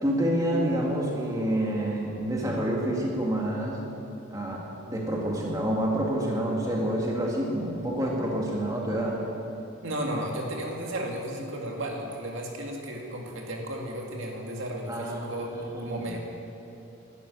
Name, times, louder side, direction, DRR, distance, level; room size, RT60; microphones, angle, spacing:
voice 1, 0.0-3.8 4.3-9.2 14.9-16.2, right 1 dB, 15° right, -3 dB, 2.0 m, -28 dB
voice 2, 9.8-16.2, right 1 dB, 70° right, 0 dB, 2.2 m, -34 dB
12.5 x 11.0 x 9.9 m, 2.8 s
head